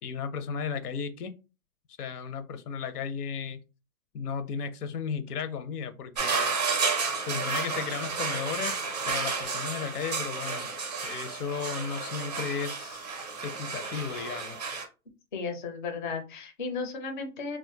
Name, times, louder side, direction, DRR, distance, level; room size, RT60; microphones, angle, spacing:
voice 1, 0.0-1.3 2.0-3.6 4.1-6.6 7.3-10.7 11.0-13.1 13.4-14.6, left 6 dB, 90° left, 0.7 m, -35 dB
sound 1, 6.2-14.9, right 5 dB, 30° right, 0.4 m, -32 dB
voice 2, 15.3-17.6, left 4 dB, 35° left, 0.4 m, -34 dB
2.4 x 2.1 x 3.8 m
hypercardioid pair, 165°, 44 cm